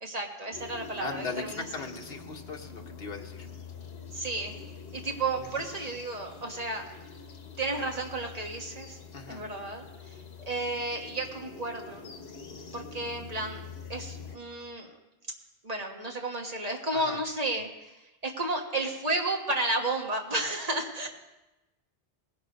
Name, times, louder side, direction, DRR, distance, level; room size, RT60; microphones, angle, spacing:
voice 1, 0.0-1.9 4.1-4.6 4.9-6.8 7.6-9.0 9.3-10.2 10.5-12.1 12.7-13.6 13.9-14.9 15.6-17.9 18.2-21.1, right 2 dB, 40° right, 2 dB, 1.6 m, -32 dB
sound 1, 0.5-14.4, left 5 dB, 90° left, 1.3 m, -45 dB
voice 2, 1.0-3.5 5.4-5.7 9.1-9.4 16.9-17.2, left 4 dB, 70° left, 3 dB, 1.4 m, -39 dB
19.0 x 6.5 x 5.3 m, 1.0 s
omnidirectional pair, 1.0 m